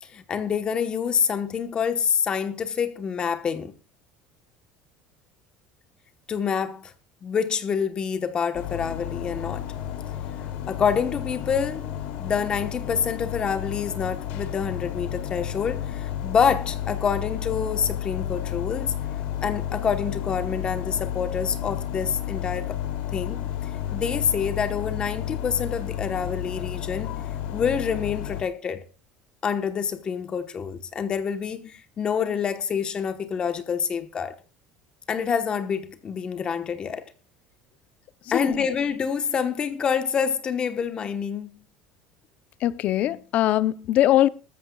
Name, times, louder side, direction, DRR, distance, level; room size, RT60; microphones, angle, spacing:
voice 1, 0.0-3.7 6.3-6.9 7.2-9.7 10.7-11.9 12.2-18.9 19.4-22.8 23.1-23.4 23.9-27.2 27.5-28.8 29.4-34.3 35.1-37.1 38.3-41.5, left 7 dB, 30° left, 1.1 m, -27 dB
sound 1, 8.5-28.4, left 11 dB, 70° left, 2.7 m, -32 dB
voice 2, 38.3-38.7 42.6-44.3, left 13 dB, 50° left, 0.7 m, -21 dB
20.5 x 13.5 x 2.3 m
cardioid pair, 130°, 3 cm